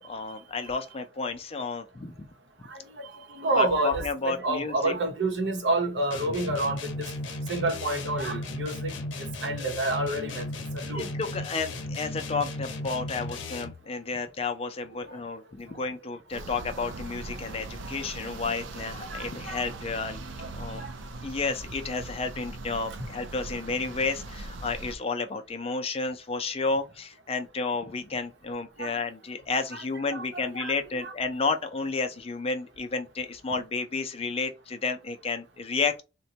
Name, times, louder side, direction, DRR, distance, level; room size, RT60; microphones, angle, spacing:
voice 1, 0.1-2.1 3.6-5.0 10.9-20.8 21.2-36.0, left 4 dB, 30° left, 0.4 m, -31 dB
voice 2, 2.7-7.1 7.5-8.9 9.2-10.5 10.7-11.1 15.7-15.8 17.8-18.0 18.8-19.6 20.4-20.5 20.8-20.9 28.8-29.0 29.7-29.8 30.1-31.1, right 2 dB, 65° right, 0.8 m, -29 dB
sound 1, 6.1-13.9, left 2 dB, 80° left, 0.7 m, -35 dB
sound 2, 16.3-25.0, right 2 dB, 90° right, 0.5 m, -40 dB
3.9 x 2.2 x 2.7 m
head